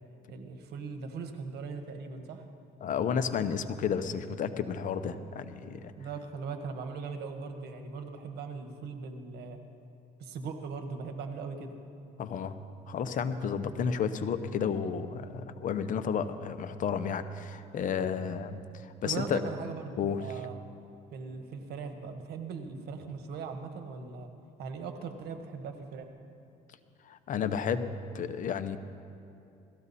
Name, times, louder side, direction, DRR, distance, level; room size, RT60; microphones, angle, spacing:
voice 1, 0.3-2.4 6.0-9.6 10.2-11.8 19.0-20.5 21.1-24.3 24.6-26.1, right 5 dB, 75° right, 6 dB, 1.4 m, -39 dB
voice 2, 2.8-5.9 12.2-12.6 12.9-18.6 19.0-19.4 20.0-20.2 27.1-28.8, left 7 dB, 50° left, 10 dB, 0.8 m, -32 dB
17.5 x 14.0 x 4.2 m, 2.8 s
cardioid pair, 110°, 17 cm